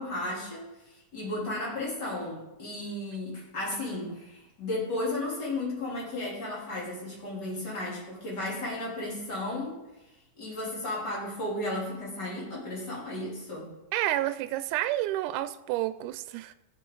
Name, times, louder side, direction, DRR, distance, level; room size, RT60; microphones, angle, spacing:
voice 1, 0.0-9.8 10.4-13.7, left 2 dB, 30° left, -5 dB, 3.9 m, -34 dB
voice 2, 13.9-16.5, right 14 dB, 85° right, 12 dB, 2.0 m, -30 dB
13.5 x 8.1 x 3.9 m, 0.97 s
omnidirectional pair, 3.6 m